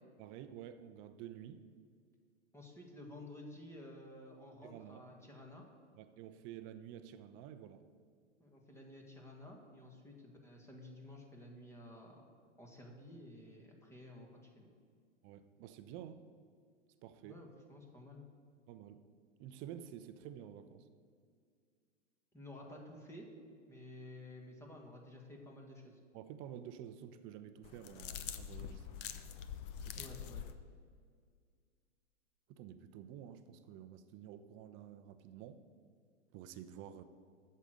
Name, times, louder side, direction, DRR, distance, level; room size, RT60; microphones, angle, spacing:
voice 1, 0.2-1.6 4.6-5.0 6.0-7.9 15.2-16.2 17.0-17.4 18.7-19.0 19.4-20.9 26.1-29.1 29.9-30.0 32.5-35.6 36.3-37.0, right 10 dB, 35° right, 10 dB, 0.7 m, -50 dB
voice 2, 2.5-5.6 8.4-12.3 12.6-14.7 17.2-18.3 22.3-23.3 23.7-26.0 30.0-30.4, left 1 dB, 5° left, 1 dB, 1.7 m, -53 dB
sound 1, 27.6-30.5, left 9 dB, 45° left, 0.8 m, -45 dB
8.2 x 6.7 x 7.7 m, 2.1 s
hypercardioid pair, 115°, 37 cm